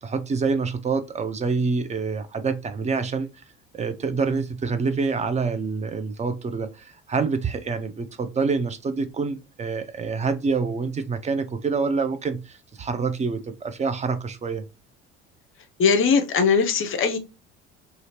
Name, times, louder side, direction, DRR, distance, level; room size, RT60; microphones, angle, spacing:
voice 1, 0.0-3.3 3.7-14.6, right 4 dB, 20° right, 0.5 m, -26 dB
voice 2, 15.8-17.2, left 5 dB, 35° left, 0.6 m, -20 dB
2.8 x 2.5 x 2.8 m
hypercardioid pair, 60°, 35 cm